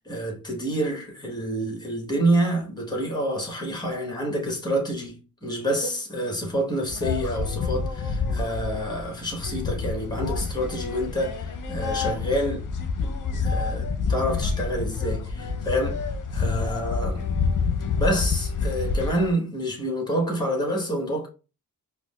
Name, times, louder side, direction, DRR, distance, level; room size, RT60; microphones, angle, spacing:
voice 1, 0.0-12.6 13.3-17.3 17.9-21.3, right 1 dB, 10° left, 1.3 m, -28 dB
sound 1, 6.9-19.3, left 4 dB, 55° left, 0.7 m, -28 dB
4.7 x 2.1 x 2.3 m
cardioid pair, 60°, 37 cm